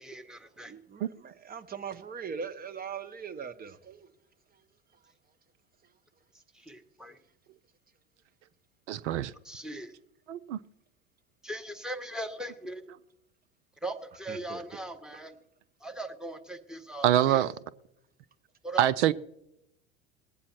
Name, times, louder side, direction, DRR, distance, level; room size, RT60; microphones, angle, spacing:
voice 1, 0.0-0.7 6.5-7.2 9.4-9.9 11.4-12.8 13.8-15.3 15.8-17.4 18.6-18.9, right 1 dB, ahead, 1.2 m, -39 dB
voice 2, 0.7-4.1 14.3-14.6 15.1-15.2, right 6 dB, 25° right, 1.0 m, -40 dB
voice 3, 8.9-9.3 10.3-10.6 17.0-17.5 18.8-19.1, right 12 dB, 75° right, 0.5 m, -24 dB
20.0 x 8.4 x 4.5 m
hypercardioid pair, 80°, 36 cm